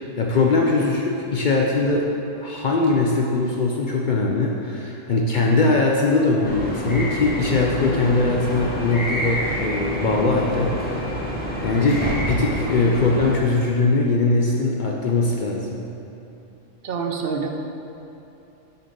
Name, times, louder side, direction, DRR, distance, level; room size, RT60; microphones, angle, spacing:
voice 1, 0.2-2.1 2.4-10.7 11.6-15.8, left 3 dB, 55° left, -1 dB, 0.5 m, -21 dB
sound 1, 6.4-13.3, equal, 10° left, 0.8 m, -27 dB
voice 2, 16.8-17.5, right 5 dB, 60° right, 3 dB, 0.7 m, -26 dB
9.7 x 3.9 x 3.8 m, 2.9 s
omnidirectional pair, 1.3 m